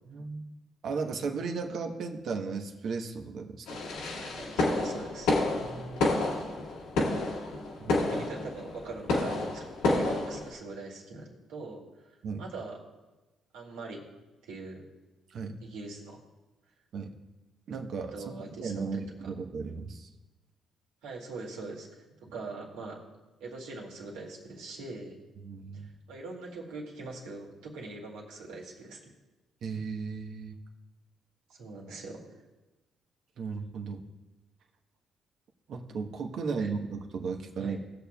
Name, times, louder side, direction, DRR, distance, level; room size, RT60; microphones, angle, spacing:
voice 1, 0.1-0.4 0.8-3.7 5.6-6.3 7.8-8.0 12.2-12.4 15.3-15.6 16.9-17.1 17.7-20.1 25.4-25.9 29.6-30.6 33.4-34.0 35.7-37.8, right 5 dB, 65° right, 4 dB, 1.1 m, -35 dB
sound 1, 3.7-10.5, left 2 dB, 85° left, 1.7 m, -30 dB
voice 2, 4.1-5.3 8.0-12.8 13.5-14.0 14.4-14.9 15.6-16.2 18.1-19.3 21.0-22.0 22.3-23.0 23.4-25.2 25.7-29.1 31.6-32.2 36.6-36.7 37.6-37.8, right 3 dB, 85° right, -2 dB, 2.2 m, -42 dB
19.0 x 6.9 x 2.3 m, 1.1 s
supercardioid pair, 55°, 0 cm